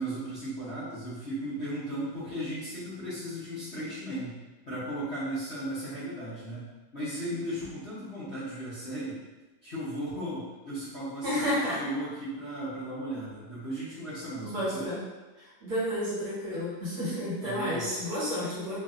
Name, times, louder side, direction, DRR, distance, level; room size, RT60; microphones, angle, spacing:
voice 1, 0.0-4.4 4.7-9.2 9.6-14.9 17.4-17.9, right 1 dB, 45° left, -11 dB, 1.0 m, -36 dB
voice 2, 11.2-11.8 14.4-15.0 15.4-18.8, equal, 55° right, -10 dB, 1.9 m, -31 dB
4.9 x 2.6 x 2.4 m, 1.2 s
omnidirectional pair, 2.0 m